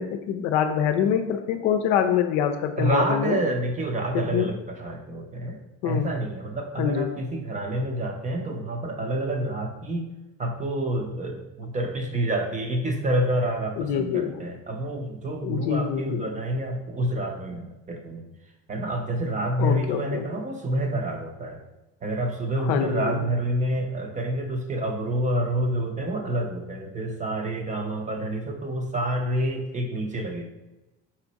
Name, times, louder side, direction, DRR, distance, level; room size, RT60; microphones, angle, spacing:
voice 1, 0.0-3.4 4.1-4.5 5.8-6.1 6.8-7.1 13.8-14.4 15.4-16.3 19.6-20.3 22.6-23.2, left 8 dB, 65° left, 7 dB, 0.5 m, -25 dB
voice 2, 2.8-10.1 10.4-18.2 18.7-21.6 22.0-30.5, right 1 dB, 25° right, 3 dB, 0.6 m, -28 dB
4.3 x 2.5 x 4.0 m, 1.0 s
supercardioid pair, 105°, 32 cm